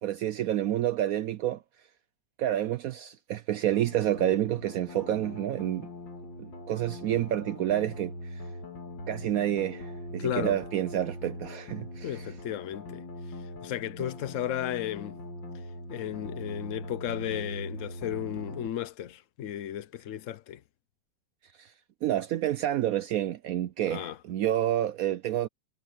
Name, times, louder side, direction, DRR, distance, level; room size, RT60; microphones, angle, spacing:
voice 1, 0.0-1.6 2.4-5.9 6.4-8.4 9.1-12.3 21.6-21.7 22.0-25.5, right 12 dB, 75° right, 0.8 m, -29 dB
sound 1, 3.7-18.7, left 1 dB, 85° left, 3.4 m, -41 dB
voice 2, 10.2-10.6 12.0-15.2 15.9-20.6 23.8-24.2, left 11 dB, 60° left, 0.8 m, -34 dB
omnidirectional pair, 2.0 m